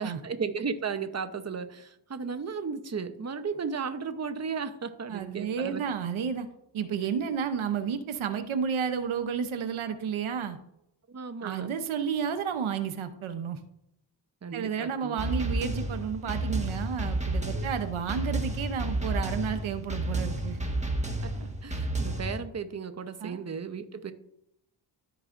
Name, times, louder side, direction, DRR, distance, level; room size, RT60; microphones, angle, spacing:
voice 1, 0.0-5.8 11.1-11.7 14.4-15.2 17.5-17.7 21.2-24.1, right 5 dB, 35° right, 9 dB, 0.8 m, -35 dB
voice 2, 5.1-6.5 6.7-10.6 11.4-13.6 14.5-20.6 23.2-23.4, right 7 dB, 90° right, 9 dB, 0.8 m, -31 dB
sound 1, 15.2-22.4, right 2 dB, 15° right, 1.5 m, -31 dB
13.0 x 4.8 x 2.5 m, 0.80 s
cardioid pair, 60°, 47 cm